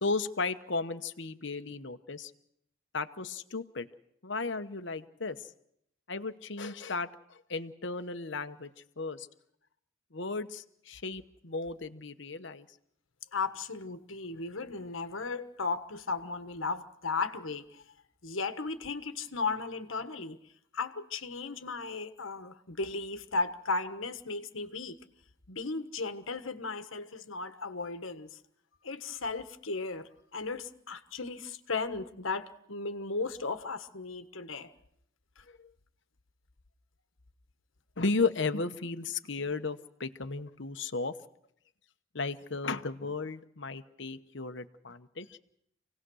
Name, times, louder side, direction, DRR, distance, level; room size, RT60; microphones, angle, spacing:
voice 1, 0.0-2.3 2.9-3.9 4.2-5.5 6.1-9.3 10.1-12.7 35.6-35.7 38.0-41.1 42.1-45.4, left 3 dB, 60° left, 10 dB, 1.1 m, -35 dB
voice 2, 13.3-17.8 18.2-20.4 20.7-25.0 25.5-28.4 28.8-34.7 35.4-35.5, left 3 dB, 75° left, 9 dB, 1.5 m, -36 dB
28.0 x 18.0 x 6.4 m, 0.74 s
head